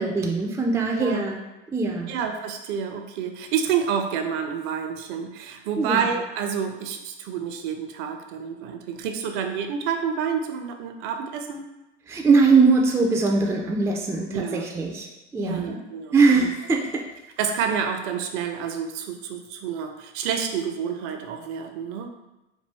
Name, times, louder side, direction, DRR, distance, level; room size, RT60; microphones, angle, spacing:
voice 1, 0.0-1.4 1.7-2.1 5.8-6.0 12.1-15.1 15.3-15.8 16.1-16.9, right 4 dB, 5° right, 0 dB, 0.4 m, -21 dB
voice 2, 0.9-1.3 2.1-11.7 14.3-14.7 15.4-16.5 17.4-22.1, right 7 dB, 50° right, 5 dB, 0.6 m, -29 dB
4.4 x 2.3 x 3.4 m, 0.99 s
hypercardioid pair, 85°, 36 cm